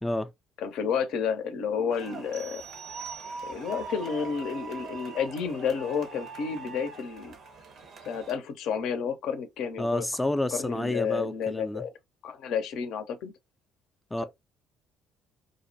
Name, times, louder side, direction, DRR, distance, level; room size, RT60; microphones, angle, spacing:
voice 1, 0.6-2.6 3.5-7.3 8.1-10.0 10.5-11.9 12.2-13.3, left 6 dB, 70° left, 0.5 m, -31 dB
sound 1, 1.9-8.4, right 4 dB, 60° right, 0.6 m, -42 dB
sound 2, 2.3-3.9, right 9 dB, 85° right, 1.3 m, -45 dB
voice 2, 9.8-11.8 14.1-14.2, left 1 dB, 10° left, 0.3 m, -29 dB
2.6 x 2.0 x 2.6 m
hypercardioid pair, 55°, 0 cm